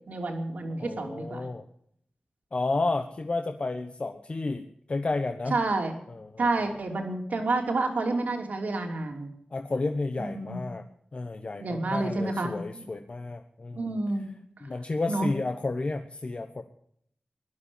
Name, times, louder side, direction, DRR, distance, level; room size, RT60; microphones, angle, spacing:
voice 1, 0.1-1.4 5.5-5.9 6.4-9.3 10.3-10.6 11.6-12.9 13.7-14.3 15.1-15.3, right 2 dB, 80° right, 3 dB, 3.1 m, -29 dB
voice 2, 0.8-1.6 2.5-5.6 6.1-6.5 9.5-10.8 11.1-13.9 14.6-16.6, left 3 dB, 45° left, 6 dB, 1.1 m, -31 dB
17.0 x 11.5 x 7.1 m, 0.68 s
wide cardioid pair, 80°, 3 cm